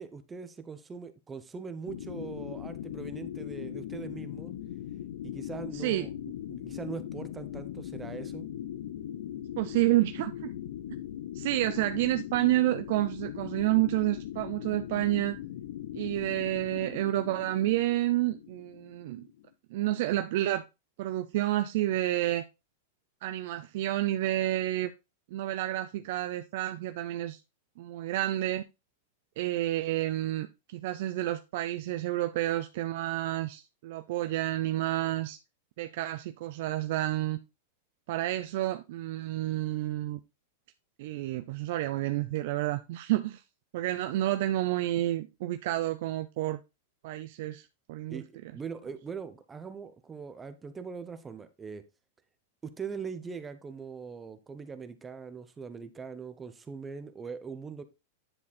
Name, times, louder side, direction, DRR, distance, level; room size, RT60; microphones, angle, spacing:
voice 1, 0.0-4.5 5.2-8.5 48.1-51.8 52.6-57.8, right 5 dB, 15° right, 0.8 m, -41 dB
sound 1, 1.9-19.5, left 11 dB, 75° left, 0.8 m, -40 dB
voice 2, 5.7-6.1 9.6-10.5 11.3-15.4 15.9-19.3 19.7-20.6 21.0-22.4 23.2-24.9 25.3-27.4 27.8-28.6 29.4-30.5 30.7-35.4 35.8-37.4 38.1-40.2 41.0-43.4 43.7-46.6 47.0-48.2, right 15 dB, 60° right, 0.5 m, -29 dB
10.0 x 4.1 x 4.2 m
supercardioid pair, 145°, 0 cm